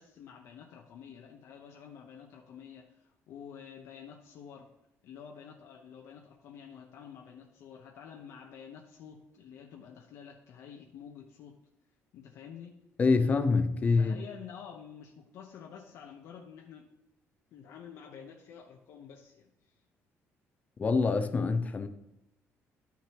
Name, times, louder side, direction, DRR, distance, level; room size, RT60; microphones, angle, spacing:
voice 1, 0.0-4.7 5.0-11.6 12.1-12.7 13.9-16.9 17.5-19.5, left 7 dB, 75° left, 0.9 m, -49 dB
voice 2, 13.0-14.2 20.8-21.9, left 4 dB, 30° left, 0.6 m, -25 dB
11.5 x 5.9 x 3.0 m
cardioid pair, 130°, 5 cm